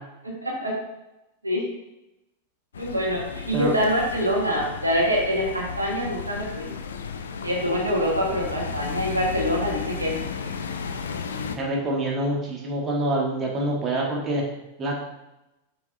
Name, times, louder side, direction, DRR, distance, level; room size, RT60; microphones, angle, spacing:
voice 1, 0.2-0.7 1.4-1.6 2.8-6.7 7.4-10.5, equal, 85° right, -2 dB, 1.6 m, -25 dB
sound 1, 2.7-11.6, left 6 dB, 65° left, 0.5 m, -34 dB
voice 2, 11.6-14.4 14.8-15.0, right 1 dB, 25° right, -2 dB, 1.5 m, -26 dB
7.6 x 6.2 x 2.6 m, 0.94 s
figure-of-eight pair, 90°, 0 cm